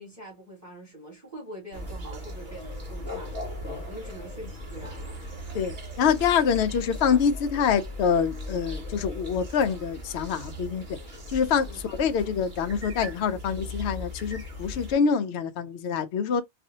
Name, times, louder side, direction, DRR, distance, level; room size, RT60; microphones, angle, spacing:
voice 1, 0.0-3.4 3.9-5.2 11.7-11.8, right 1 dB, 15° right, 1.8 m, -44 dB
sound 1, 1.7-14.9, left 1 dB, 45° right, 1.4 m, -38 dB
voice 2, 5.5-11.0 11.3-16.4, left 7 dB, 75° left, 0.8 m, -26 dB
4.1 x 2.6 x 2.7 m
omnidirectional pair, 1.1 m